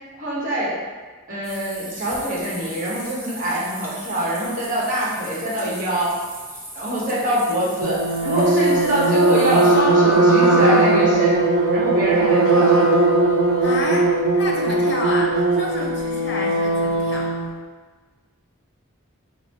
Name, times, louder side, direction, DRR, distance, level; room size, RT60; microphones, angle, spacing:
voice 1, 0.2-0.7 1.3-6.2 6.7-11.4 11.7-12.9, right 1 dB, 40° right, -7 dB, 1.0 m, -24 dB
sound 1, 1.4-9.7, right 1 dB, 10° right, 0.5 m, -38 dB
sound 2, 7.8-17.4, right 2 dB, 80° right, 0.4 m, -18 dB
voice 2, 13.6-17.3, left 2 dB, 55° left, -1 dB, 0.6 m, -30 dB
3.9 x 2.0 x 4.1 m, 1.4 s
head